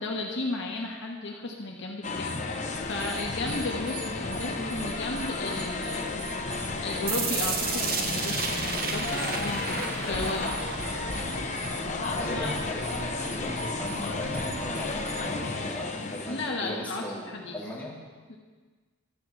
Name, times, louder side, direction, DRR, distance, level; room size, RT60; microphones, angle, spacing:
voice 1, 0.0-6.5 6.8-10.5 12.2-12.6 16.2-17.6 18.3-18.4, left 2 dB, 60° left, 0 dB, 1.1 m, -34 dB
sound 1, 2.0-16.6, left 3 dB, 35° left, 0.7 m, -33 dB
sound 2, 2.7-15.2, right 1 dB, 25° right, 1.3 m, -41 dB
sound 3, 7.1-13.1, right 5 dB, 45° right, 0.9 m, -33 dB
voice 2, 12.2-17.9, left 1 dB, 10° left, -7 dB, 2.3 m, -38 dB
12.5 x 4.7 x 7.5 m, 1.4 s
head